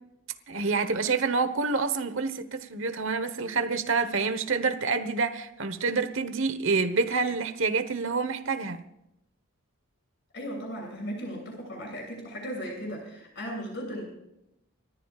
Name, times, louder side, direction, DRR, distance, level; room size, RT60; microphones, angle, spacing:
voice 1, 0.5-8.8, right 4 dB, 65° right, 1.3 m, -27 dB
voice 2, 10.3-14.0, equal, 55° left, 7.1 m, -36 dB
29.5 x 14.0 x 2.5 m
head